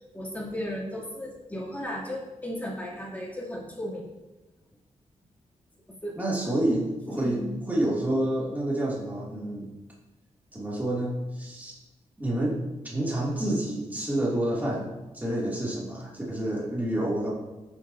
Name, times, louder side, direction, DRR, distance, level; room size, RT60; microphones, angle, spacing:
voice 1, 0.1-4.0 6.0-6.6 7.1-7.6, left 1 dB, 10° left, -4 dB, 2.7 m, -35 dB
voice 2, 6.2-7.4 7.7-9.7 10.5-11.7 12.2-12.6 12.8-17.3, right 1 dB, 15° right, -6 dB, 2.5 m, -28 dB
15.5 x 7.3 x 2.7 m, 1.1 s
wide cardioid pair, 110°, 13 cm